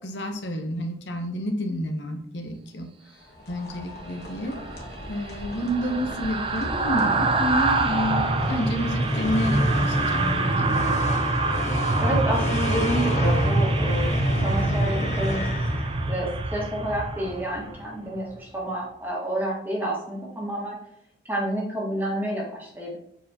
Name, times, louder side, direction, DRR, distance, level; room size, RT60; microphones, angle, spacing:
voice 1, 0.0-2.9 3.5-4.6 5.1-10.9, equal, 80° left, 4 dB, 0.9 m, -29 dB
sound 1, 3.1-10.6, left 1 dB, 60° left, 1.5 m, -40 dB
sound 2, 4.5-17.8 18.2-18.4, right 2 dB, 30° right, 0.5 m, -25 dB
sound 3, 7.7-16.3, left 2 dB, 40° left, 0.5 m, -32 dB
voice 2, 12.0-15.5 16.1-20.8 21.3-23.0, right 1 dB, 10° right, -4 dB, 1.7 m, -29 dB
7.1 x 4.7 x 2.9 m, 0.71 s
head